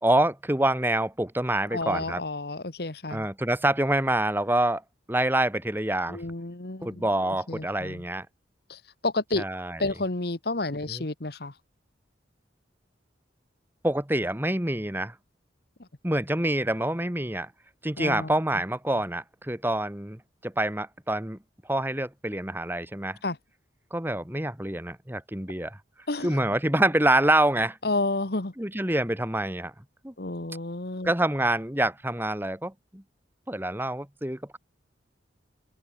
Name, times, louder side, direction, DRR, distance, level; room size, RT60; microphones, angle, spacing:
voice 1, 0.0-2.2 3.1-4.8 5.1-6.2 6.8-8.3 9.4-9.8 11.0-11.1 13.8-15.1 16.0-17.5 17.8-21.4 21.7-23.2 23.9-25.8 26.2-27.8 28.6-29.7 30.0-30.1 31.0-33.0 33.5-34.6, right 1 dB, 10° right, 2.0 m, -26 dB
voice 2, 1.7-3.3 6.1-8.0 8.7-9.4 9.8-11.5 18.0-18.3 23.2-23.4 26.1-26.4 27.8-28.5 30.2-31.1, left 2 dB, 55° left, 1.5 m, -31 dB
open air
head